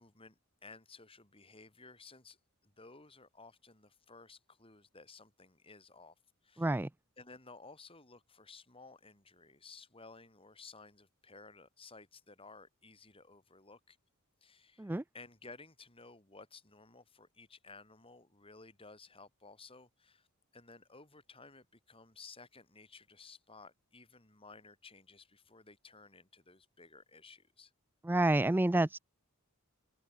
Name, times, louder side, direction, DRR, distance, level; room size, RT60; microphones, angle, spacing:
voice 1, 0.0-2.4 2.6-6.2 6.4-6.8 7.2-14.0 14.4-20.3 20.5-27.7, left 4 dB, 25° left, 7.4 m, -56 dB
voice 2, 6.6-6.9 14.8-15.0 28.0-29.0, right 2 dB, 10° right, 0.4 m, -29 dB
open air
head